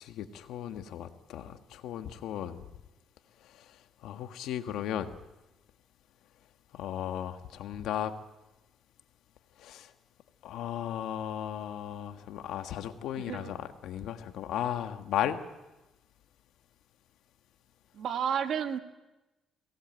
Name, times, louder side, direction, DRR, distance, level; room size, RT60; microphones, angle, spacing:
voice 1, 0.0-2.7 3.4-5.1 6.7-8.1 9.6-9.9 10.4-15.4, left 10 dB, 85° left, 8 dB, 1.6 m, -36 dB
voice 2, 13.2-13.5 17.9-18.8, right 8 dB, 65° right, 8 dB, 1.9 m, -31 dB
22.5 x 19.0 x 9.2 m, 1.0 s
cardioid pair, 90°, 0 cm